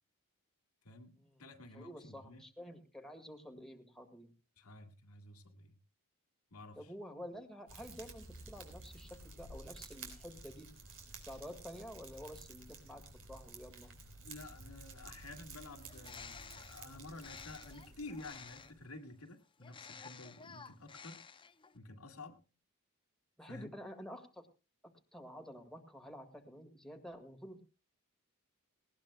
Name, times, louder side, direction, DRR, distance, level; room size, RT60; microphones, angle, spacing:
voice 1, 0.8-2.4 4.6-5.8 6.5-6.8 14.2-21.2 21.7-22.4 23.5-23.7, left 2 dB, 85° left, 4 dB, 2.0 m, -51 dB
voice 2, 1.7-4.3 6.8-10.7 11.3-13.9 23.4-24.5 24.8-27.6, equal, ahead, 3 dB, 1.9 m, -50 dB
Fire, 7.7-18.8, right 3 dB, 65° right, 4.1 m, -53 dB
Bird, 15.8-18.9 19.6-21.8, left 6 dB, 25° left, 0.6 m, -53 dB
19.0 x 18.0 x 2.3 m, 0.30 s
head